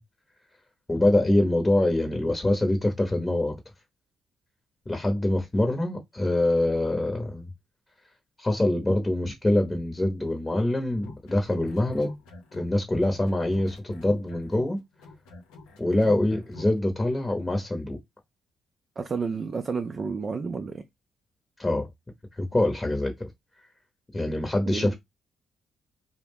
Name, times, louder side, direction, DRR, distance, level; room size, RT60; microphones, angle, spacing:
voice 1, 0.9-3.5 4.9-7.5 8.4-12.1 12.5-14.8 15.8-18.0 21.6-21.9 22.4-23.3 24.1-24.9, left 1 dB, 20° left, 0.8 m, -24 dB
sound 1, 10.9-12.7 13.0-16.8, left 2 dB, 90° left, 0.6 m, -45 dB
voice 2, 19.0-20.8 24.7-24.9, right 5 dB, 45° right, 0.3 m, -31 dB
2.4 x 2.0 x 3.4 m
supercardioid pair, 60°, 0 cm